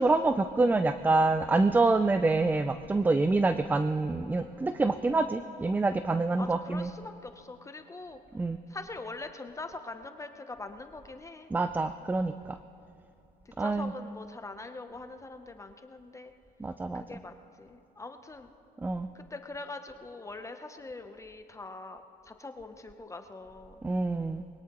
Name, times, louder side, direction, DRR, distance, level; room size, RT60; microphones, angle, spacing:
voice 1, 0.0-6.9 8.3-8.6 11.5-12.6 13.6-13.9 16.6-17.0 18.8-19.1 23.8-24.4, right 3 dB, 10° right, 10 dB, 0.4 m, -26 dB
voice 2, 6.4-8.2 8.7-11.5 13.5-16.3 16.9-18.5 19.1-23.8, left 3 dB, 20° left, 7 dB, 0.7 m, -43 dB
22.0 x 17.5 x 3.0 m, 2.6 s
cardioid pair, 110°, 17 cm